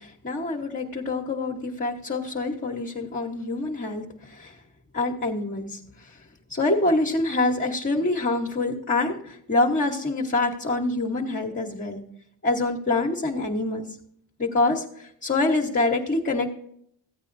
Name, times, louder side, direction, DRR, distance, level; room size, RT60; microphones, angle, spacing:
voice 1, 0.0-4.6 4.9-6.2 6.5-12.0 12.4-13.8 14.4-16.5, left 2 dB, 25° left, -3 dB, 1.2 m, -26 dB
15.0 x 8.9 x 2.6 m, 0.69 s
cardioid pair, 90°, 45 cm